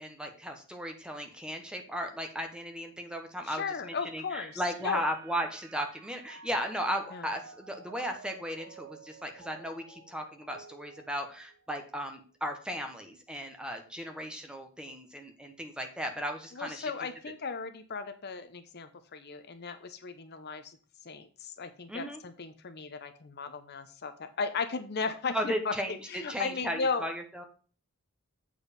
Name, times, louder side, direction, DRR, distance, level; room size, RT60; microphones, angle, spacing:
voice 1, 0.0-16.9 21.9-22.2 25.3-27.4, equal, 5° right, 4 dB, 1.2 m, -36 dB
voice 2, 3.5-5.1 7.1-7.3 16.5-20.8 21.0-25.7 26.1-27.1, left 4 dB, 50° left, 10 dB, 0.7 m, -36 dB
Mallet percussion, 4.2-11.9, right 4 dB, 90° right, 0.8 m, -52 dB
7.9 x 4.7 x 5.2 m, 0.39 s
head